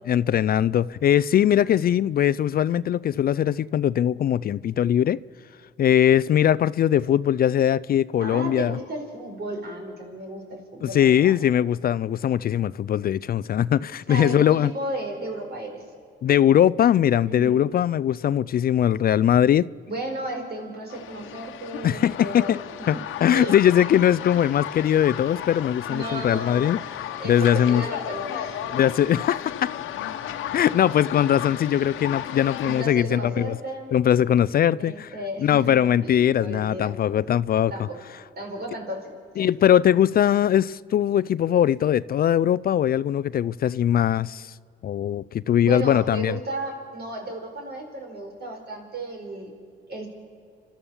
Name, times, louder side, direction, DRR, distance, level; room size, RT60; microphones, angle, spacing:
voice 1, 0.1-5.2 5.8-8.8 10.8-14.7 16.2-19.7 21.8-22.6 22.9-23.0 23.2-26.8 27.2-27.8 28.7-29.7 30.5-33.6 33.9-35.1 35.4-37.9 39.4-44.5 44.8-46.4, left 10 dB, 50° left, 0.4 m, -21 dB
voice 2, 8.2-11.4 14.1-15.8 17.3-17.6 19.9-22.6 22.9-23.0 23.3-23.5 25.9-26.7 27.2-28.6 32.6-33.9 34.8-36.9 37.7-38.0 38.4-39.1 45.6-49.5 49.9-50.1, right 2 dB, 55° right, 4.8 m, -34 dB
sound 1, 20.9-32.8, left 11 dB, 85° left, 1.1 m, -34 dB
29.5 x 13.0 x 7.2 m
cardioid pair, 90°, 20 cm